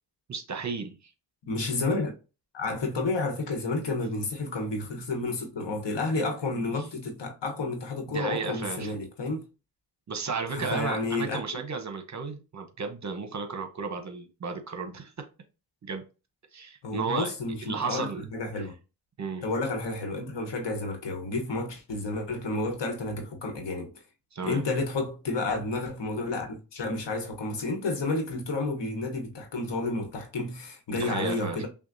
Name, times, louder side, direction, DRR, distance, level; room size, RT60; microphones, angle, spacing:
voice 1, 0.3-0.9 8.1-9.0 10.1-15.3 15.8-16.0 16.5-17.3 17.6-18.3 19.2-19.4 24.3-24.6 30.9-31.6, right 5 dB, 40° right, 0.8 m, -33 dB
voice 2, 1.5-2.1 2.5-9.4 10.5-11.4 16.8-18.7 19.4-23.9 24.4-31.7, left 2 dB, 70° left, 1.2 m, -31 dB
5.8 x 2.3 x 2.6 m
cardioid pair, 70°, 44 cm